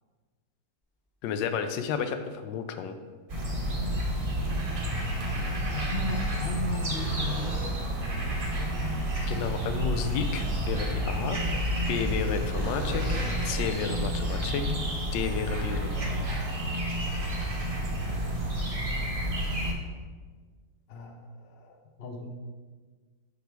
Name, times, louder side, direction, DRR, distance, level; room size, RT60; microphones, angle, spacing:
voice 1, 1.2-3.0 9.3-11.4 11.9-13.0 13.4-14.6 15.1-16.2, left 7 dB, 85° left, 8 dB, 1.3 m, -32 dB
sound 1, 3.3-19.7, right 1 dB, 40° right, 0.4 m, -30 dB
sound 2, 5.1-5.8 6.9-8.0 11.2-12.2 12.5-13.6 17.2-17.3, equal, 10° left, 1.7 m, -42 dB
voice 2, 5.7-7.5 8.1-9.0 14.3-14.8 20.9-21.2 21.5-22.3, left 4 dB, 60° left, 4 dB, 0.6 m, -36 dB
5.1 x 4.9 x 4.6 m, 1.5 s
omnidirectional pair, 1.9 m